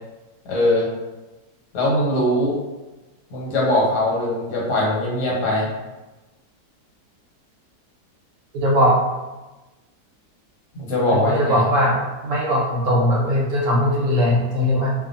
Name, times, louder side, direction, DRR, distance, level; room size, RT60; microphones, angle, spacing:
voice 1, 0.5-0.9 1.7-2.6 3.3-5.7 10.7-11.6, left 1 dB, 80° left, -5 dB, 1.5 m, -21 dB
voice 2, 8.5-9.0 11.1-14.9, equal, 65° right, -4 dB, 0.9 m, -19 dB
2.5 x 2.4 x 2.5 m, 1.1 s
omnidirectional pair, 1.7 m